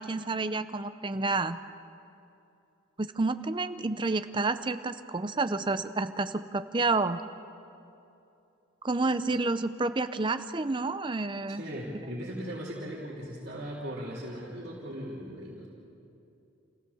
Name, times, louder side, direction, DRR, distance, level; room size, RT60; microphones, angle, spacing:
voice 1, 0.0-1.6 3.0-7.2 8.8-11.6, right 3 dB, 25° right, 11 dB, 0.6 m, -29 dB
voice 2, 11.6-15.7, equal, 50° right, -7 dB, 3.2 m, -38 dB
28.5 x 16.0 x 7.1 m, 2.8 s
head